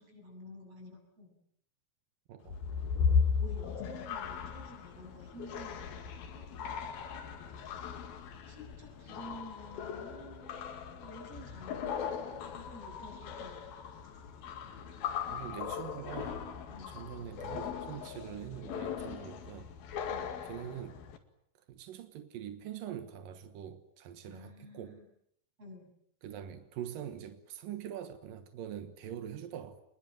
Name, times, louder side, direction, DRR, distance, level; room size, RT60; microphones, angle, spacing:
voice 1, 0.0-1.3 3.1-6.4 8.5-13.7 16.7-17.0 20.1-20.3 24.2-25.1 25.6-25.9, left 1 dB, 30° right, 8.2 m, -51 dB
voice 2, 2.3-2.6 15.3-16.5 16.9-19.7 20.5-21.0 21.7-25.0 26.2-29.8, right 10 dB, 75° right, 2.1 m, -44 dB
sound 1, 2.4-21.2, left 6 dB, 55° left, 3.4 m, -37 dB
27.5 x 21.5 x 9.2 m
omnidirectional pair, 6.0 m